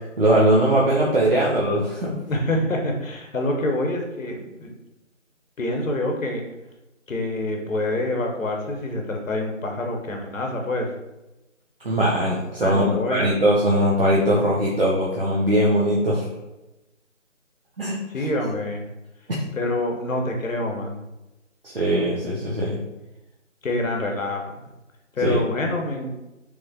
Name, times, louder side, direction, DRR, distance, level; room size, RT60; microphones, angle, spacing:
voice 1, 0.2-2.2 11.8-12.8 13.1-16.3 17.8-18.0 19.3-19.4 21.6-22.8 25.2-25.4, right 1 dB, 50° right, -5 dB, 0.5 m, -20 dB
voice 2, 2.3-4.7 5.6-6.4 7.1-10.9 12.6-13.3 18.1-18.9 19.6-21.0 23.6-24.6 25.1-26.2, left 1 dB, 90° left, 2 dB, 0.8 m, -26 dB
3.1 x 2.3 x 2.5 m, 0.99 s
figure-of-eight pair, 165°, 38 cm